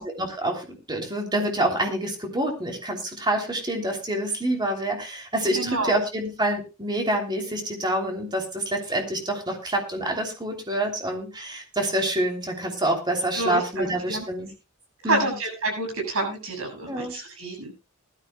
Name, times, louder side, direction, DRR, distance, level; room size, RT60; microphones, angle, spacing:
voice 1, 0.0-14.5 15.0-15.3 16.9-17.1, right 1 dB, 20° right, 2 dB, 3.1 m, -27 dB
voice 2, 5.5-5.9 13.3-14.3 15.0-17.7, right 2 dB, 70° right, 2 dB, 7.6 m, -28 dB
19.5 x 13.5 x 2.3 m, 0.30 s
head